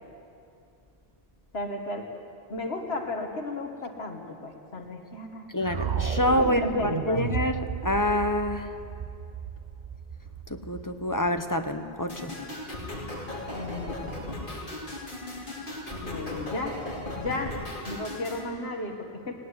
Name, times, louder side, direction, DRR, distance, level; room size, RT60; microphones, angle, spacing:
voice 1, 1.5-2.1 2.5-5.5 6.4-7.2 13.5-14.0 16.0-16.8 17.2-17.5 17.8-19.3, left 2 dB, 70° left, 3 dB, 1.8 m, -34 dB
voice 2, 5.5-8.7 10.5-12.3, left 1 dB, 20° left, 7 dB, 0.9 m, -27 dB
sound 1, 5.6-11.7, right 7 dB, 45° right, 0.8 m, -34 dB
sound 2, 12.1-18.5, left 1 dB, 50° left, 3.1 m, -37 dB
18.5 x 17.5 x 9.6 m, 2.5 s
omnidirectional pair, 1.1 m